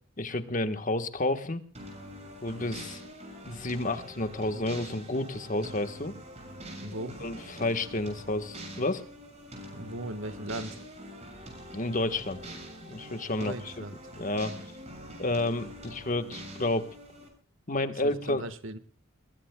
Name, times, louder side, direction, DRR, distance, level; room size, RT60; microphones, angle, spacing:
voice 1, 0.2-1.6 2.4-3.0 3.5-6.2 6.9-9.0 11.7-12.5 12.8-13.8 14.2-14.5 15.2-16.9 17.7-18.4, left 2 dB, 40° left, 9 dB, 1.4 m, -30 dB
sound 1, 1.7-17.3, equal, 35° right, 6.8 m, -44 dB
voice 2, 6.8-7.2 9.7-10.8 13.4-13.9 18.0-18.8, right 1 dB, 75° right, 11 dB, 1.6 m, -38 dB
21.5 x 21.0 x 2.3 m, 0.43 s
head